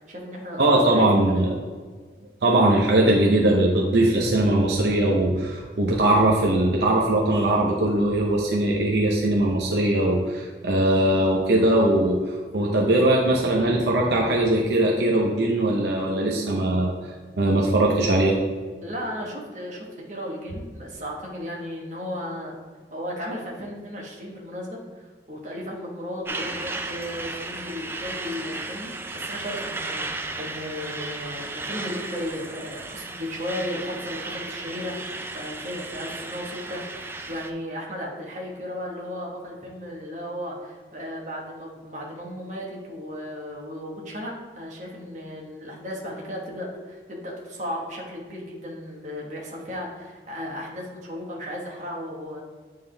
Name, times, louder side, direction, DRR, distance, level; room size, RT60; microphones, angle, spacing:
voice 1, 0.0-1.4 18.8-22.6 22.9-52.4, equal, 40° right, -3 dB, 1.3 m, -35 dB
voice 2, 0.6-1.6 2.4-16.9 17.4-18.4 31.0-31.1, right 1 dB, 75° right, -2 dB, 0.7 m, -20 dB
Truck, 26.3-37.5, right 2 dB, 15° right, 0.3 m, -35 dB
8.8 x 3.7 x 3.4 m, 1.5 s
head